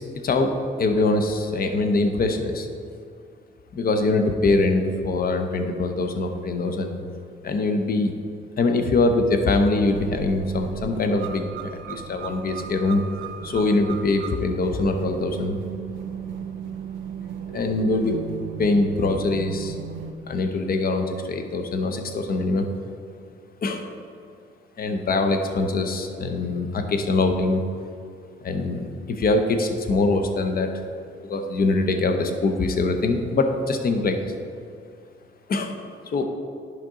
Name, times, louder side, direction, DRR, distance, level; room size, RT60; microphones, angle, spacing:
voice 1, 0.2-0.5 0.8-2.7 3.7-6.9 7.4-8.1 8.6-11.5 11.9-13.0 13.4-15.6 17.5-18.2 18.6-19.8 20.3-22.7 23.6-23.8 24.8-27.6 28.4-30.8 31.3-34.3 35.5-35.8 36.1-36.2, left 3 dB, 50° left, 6 dB, 0.9 m, -23 dB
sound 1, 9.9-20.1, right 7 dB, 75° right, 0.5 m, -35 dB
10.5 x 5.2 x 3.8 m, 2.4 s
cardioid pair, 90°, 20 cm